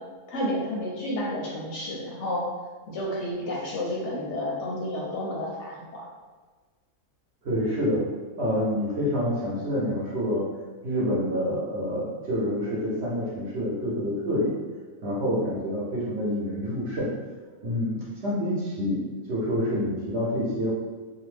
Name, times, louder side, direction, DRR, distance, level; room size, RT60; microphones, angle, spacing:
voice 1, 0.3-2.4 2.9-6.0, left 1 dB, 65° left, -3 dB, 0.8 m, -31 dB
voice 2, 7.4-8.1 8.4-10.5 10.8-14.5 15.0-17.1 17.6-20.7, equal, 55° right, -6 dB, 0.9 m, -27 dB
2.6 x 2.1 x 3.2 m, 1.4 s
omnidirectional pair, 1.5 m